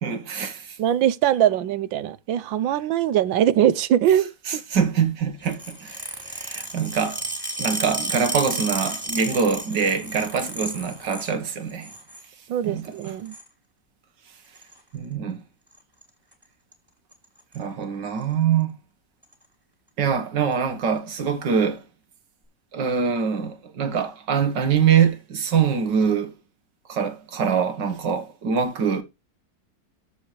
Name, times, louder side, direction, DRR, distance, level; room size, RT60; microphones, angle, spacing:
voice 1, 0.0-0.8 4.5-7.3 7.6-11.9 12.6-13.1 14.9-15.4 17.6-18.7 20.0-21.9 22.7-26.4 26.9-29.0, right 7 dB, 70° right, 1.9 m, -24 dB
voice 2, 0.8-4.6 12.5-13.3, right 11 dB, 90° right, 1.5 m, -22 dB
sound 1, 5.4-11.3 11.7-12.2 13.0-13.5 14.6-14.8 15.7-16.0 16.3-16.4 16.7-16.8 17.1-17.6 18.2-18.3 19.2-19.3, right 1 dB, 10° right, 3.0 m, -32 dB
14.0 x 5.1 x 3.1 m
omnidirectional pair, 2.0 m